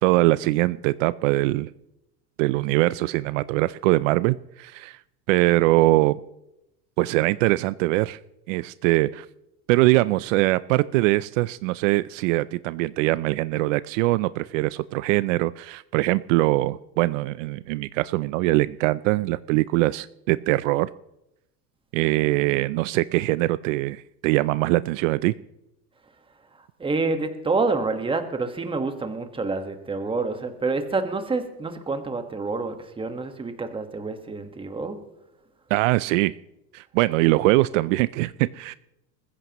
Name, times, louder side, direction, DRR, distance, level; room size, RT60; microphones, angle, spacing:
voice 1, 0.0-1.7 2.4-5.0 5.3-6.2 7.0-8.2 8.5-9.3 9.7-20.9 21.9-25.3 35.7-36.3 36.7-38.7, right 19 dB, 75° right, 17 dB, 0.5 m, -22 dB
voice 2, 26.8-35.0, right 3 dB, 15° right, 7 dB, 1.4 m, -27 dB
21.0 x 15.0 x 3.0 m, 0.89 s
supercardioid pair, 125°, 38 cm